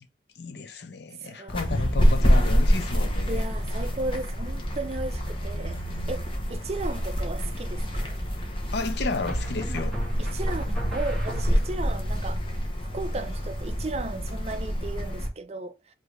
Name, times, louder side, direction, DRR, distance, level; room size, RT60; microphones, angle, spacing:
voice 1, 0.4-3.5 8.7-10.0, left 3 dB, 60° left, 0.6 m, -32 dB
voice 2, 1.2-1.7 3.3-5.8 6.1-8.2 9.7-12.6 12.9-15.9, right 2 dB, 35° right, 0.4 m, -35 dB
sound 1, 1.5-15.3, equal, 25° left, 0.8 m, -26 dB
sound 2, 6.6-7.1 9.3-11.9, right 1 dB, 5° left, 1.6 m, -36 dB
4.8 x 2.6 x 3.1 m
head